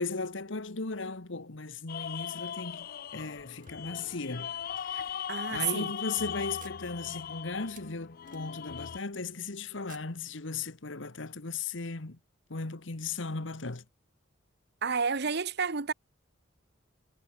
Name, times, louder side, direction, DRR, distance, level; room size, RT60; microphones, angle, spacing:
voice 1, 0.0-2.9 3.1-5.2 5.5-12.2 12.5-13.8, left 4 dB, 75° left, 1.5 m, -37 dB
sound 1, 1.9-9.0, left 8 dB, 50° left, 0.4 m, -39 dB
sound 2, 3.6-4.4 5.1-5.2 5.6-5.8 6.5-8.9 9.8-11.0, right 8 dB, 45° right, 5.1 m, -59 dB
voice 2, 5.3-5.9 14.8-15.9, right 6 dB, 60° right, 1.2 m, -30 dB
head